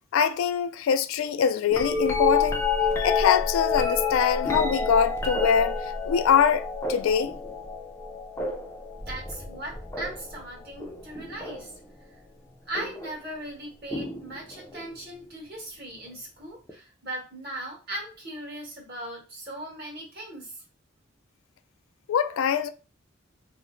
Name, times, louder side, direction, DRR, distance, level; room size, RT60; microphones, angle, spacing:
voice 1, 0.1-2.6 3.0-5.8 6.1-7.3 22.1-22.7, left 7 dB, 85° left, 0.3 m, -23 dB
sound 1, 1.7-11.8 12.7-13.2 13.9-14.9 16.7-16.8, left 4 dB, 15° left, 0.4 m, -29 dB
voice 2, 9.1-11.7 12.7-20.6, right 1 dB, 50° right, 1.5 m, -38 dB
2.9 x 2.0 x 3.7 m
head